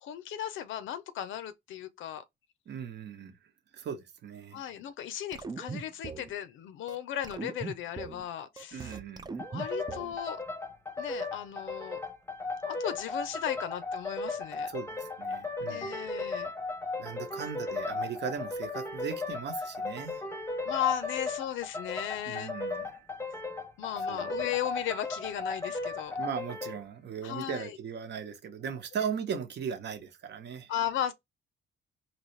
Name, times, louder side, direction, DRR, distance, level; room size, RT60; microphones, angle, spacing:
voice 1, 0.0-2.2 4.5-9.0 9.5-10.4 11.0-12.0 12.6-14.7 15.7-16.5 20.7-22.5 23.8-26.2 27.2-27.8 30.7-31.1, left 11 dB, 80° left, 0.6 m, -36 dB
voice 2, 2.7-3.3 3.7-4.7 8.7-9.4 14.7-15.9 17.0-20.2 22.2-22.9 24.0-24.3 26.2-30.7, right 7 dB, 60° right, 1.0 m, -38 dB
sound 1, 5.3-6.3 6.9-7.0 7.2-8.3 8.6-10.2, right 5 dB, 20° right, 0.4 m, -40 dB
sound 2, 9.4-26.8, left 3 dB, 10° left, 0.8 m, -36 dB
4.0 x 2.9 x 3.2 m
cardioid pair, 90°, 20 cm